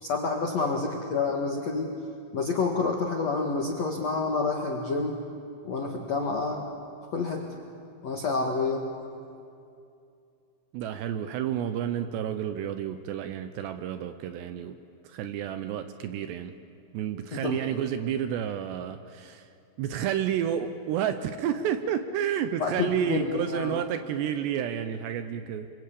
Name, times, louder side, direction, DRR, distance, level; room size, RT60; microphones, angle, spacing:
voice 1, 0.0-1.9 2.3-5.2 5.6-6.7 7.1-7.5 8.0-8.9 17.3-17.6 22.6-23.8, left 4 dB, 60° left, 1 dB, 1.7 m, -28 dB
voice 2, 10.7-14.8 15.0-16.5 16.9-19.5 19.8-25.7, right 9 dB, 75° right, 9 dB, 2.7 m, -30 dB
27.5 x 24.5 x 8.5 m, 2.5 s
omnidirectional pair, 5.6 m